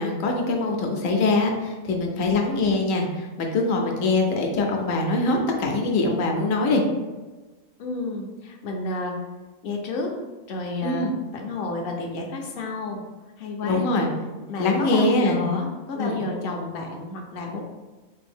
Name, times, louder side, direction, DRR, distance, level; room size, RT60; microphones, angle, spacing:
voice 1, 0.0-6.8 10.8-11.1 13.6-14.1 14.6-15.4 16.0-16.2, left 2 dB, 75° left, 1 dB, 1.0 m, -23 dB
voice 2, 7.8-9.2 9.6-10.1 10.5-13.0 13.4-13.9 14.5-17.6, left 3 dB, 55° left, 1 dB, 0.7 m, -30 dB
3.4 x 2.6 x 3.4 m, 1.2 s
omnidirectional pair, 1.4 m